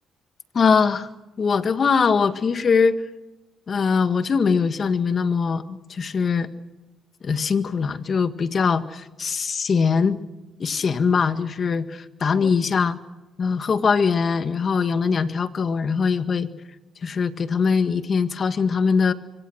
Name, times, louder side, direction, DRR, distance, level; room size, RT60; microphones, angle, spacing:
voice 1, 0.5-1.1 1.4-3.0 3.7-6.5 7.2-10.2 10.6-13.0 13.4-16.5 17.0-19.1, left 5 dB, 50° left, 10 dB, 1.8 m, -22 dB
25.5 x 25.0 x 6.5 m, 1.1 s
cardioid pair, 75°, 0 cm